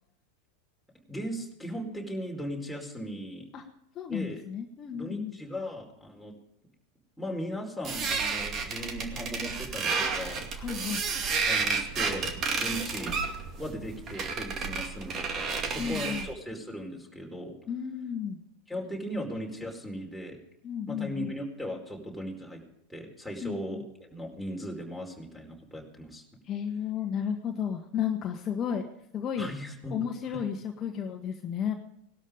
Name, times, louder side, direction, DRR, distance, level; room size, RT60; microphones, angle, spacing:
voice 1, 1.1-3.5 4.1-4.4 4.9-6.3 7.2-10.4 11.5-13.1 13.5-17.6 18.7-20.4 20.9-22.6 22.9-26.2 29.4-30.4, equal, ahead, -1 dB, 4.6 m, -38 dB
voice 2, 3.9-5.4 10.6-11.0 15.8-16.2 17.7-18.4 20.6-21.3 23.4-23.8 26.5-28.9 29.1-29.5 29.9-31.7, left 8 dB, 35° left, 3 dB, 1.6 m, -33 dB
sound 1, 7.8-16.3, right 4 dB, 35° right, 2.3 m, -31 dB
19.5 x 12.5 x 5.2 m, 0.78 s
figure-of-eight pair, 90°, 0 cm